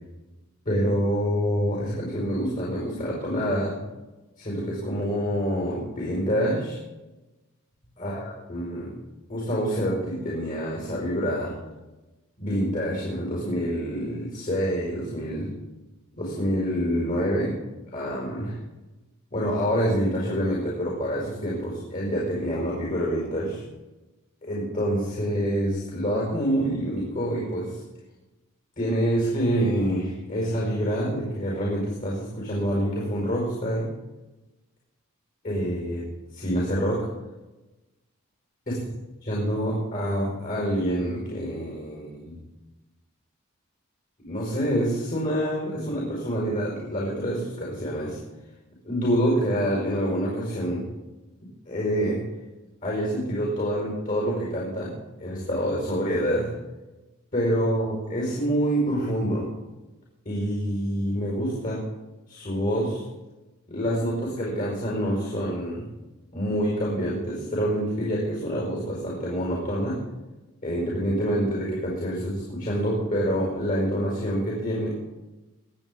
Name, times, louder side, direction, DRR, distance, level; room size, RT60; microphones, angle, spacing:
voice 1, 0.6-3.7 4.4-6.8 8.0-8.9 9.3-11.5 12.4-15.5 16.1-17.5 17.9-18.6 19.3-23.6 24.4-27.8 28.8-33.9 35.4-36.0 36.3-37.0 38.7-38.8 39.3-42.4 44.2-48.2 48.8-50.9 51.7-52.2 52.8-54.9 55.2-56.5 57.3-59.5 60.2-61.8 62.3-63.0 63.7-65.9 66.3-70.0 70.6-74.9, equal, 40° left, -4 dB, 4.8 m, -26 dB
23.0 x 8.8 x 3.8 m, 1.1 s
head